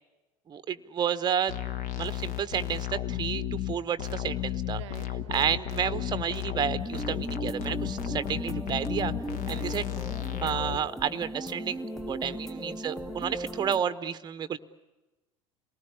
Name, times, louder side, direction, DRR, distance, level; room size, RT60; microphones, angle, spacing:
voice 1, 0.5-1.6 2.0-4.8 5.3-9.1 9.5-9.9 10.4-14.6, right 8 dB, 25° right, 13 dB, 0.9 m, -31 dB
sound 1, 1.5-10.8, left 12 dB, 45° left, 1.5 m, -33 dB
voice 2, 4.7-5.5 9.5-9.8 12.3-12.4, right 12 dB, 60° right, 19 dB, 0.8 m, -47 dB
sound 2, 6.8-13.8, right 1 dB, 5° left, 0.9 m, -37 dB
28.0 x 19.0 x 9.8 m, 1.1 s
figure-of-eight pair, 70°, 17 cm